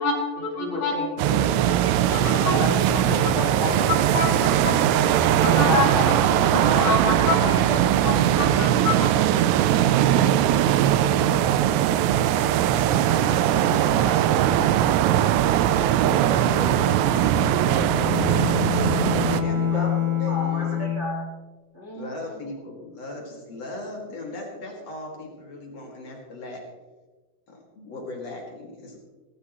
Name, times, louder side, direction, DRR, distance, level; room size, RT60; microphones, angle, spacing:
voice 1, 0.0-1.1 1.6-2.6 2.9-3.0 3.9-6.1 6.5-9.1, left 4 dB, 60° left, 0 dB, 3.5 m, -28 dB
voice 2, 0.6-1.5 2.2-2.7 3.0-4.0 5.1-8.0 19.2-21.2 21.7-22.4, left 2 dB, 30° right, -3 dB, 1.2 m, -32 dB
sound 1, 1.2-19.4, right 11 dB, 80° right, 2.7 m, -20 dB
sound 2, 2.5-17.6 17.9-18.0 18.3-18.9, left 2 dB, 90° left, 3.9 m, -42 dB
voice 3, 12.7-18.8 19.3-21.0 21.9-26.6 27.5-29.0, left 2 dB, 40° left, -1 dB, 3.0 m, -38 dB
Bowed string instrument, 17.5-21.3, left 8 dB, 55° right, 5.6 m, -26 dB
18.5 x 14.5 x 3.2 m, 1.3 s
omnidirectional pair, 5.2 m